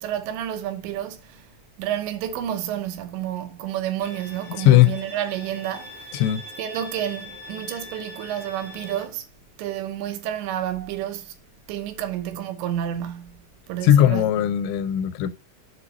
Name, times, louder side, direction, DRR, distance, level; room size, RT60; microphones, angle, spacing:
voice 1, 0.0-1.5 1.8-6.2 6.6-9.3 9.6-11.4 11.7-14.5, right 11 dB, 80° right, 3.1 m, -30 dB
Bowed string instrument, 4.0-9.0, left 1 dB, 55° right, 1.7 m, -42 dB
voice 2, 4.6-5.0 6.1-6.4 13.8-15.3, left 12 dB, 90° left, 3.0 m, -18 dB
7.6 x 4.1 x 4.0 m
omnidirectional pair, 5.3 m